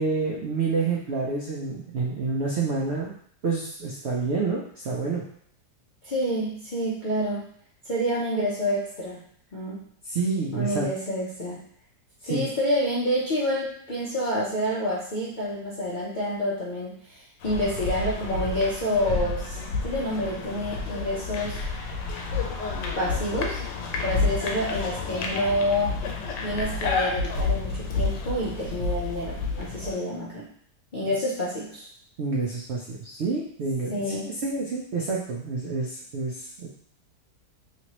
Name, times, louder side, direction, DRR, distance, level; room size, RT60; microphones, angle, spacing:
voice 1, 0.0-3.1 3.4-5.2 10.0-10.9 12.2-12.5 31.0-31.1 32.2-36.7, right 4 dB, 85° right, -3 dB, 0.5 m, -28 dB
voice 2, 6.0-7.5 7.8-9.2 9.5-9.8 10.5-11.6 12.2-21.6 23.0-23.6 24.0-26.0 26.4-30.5 30.9-31.9 33.9-34.3, equal, 60° left, -8 dB, 0.5 m, -28 dB
sound 1, 17.4-29.9, left 3 dB, 85° left, 1.2 m, -30 dB
3.1 x 2.9 x 2.9 m, 0.64 s
omnidirectional pair, 1.8 m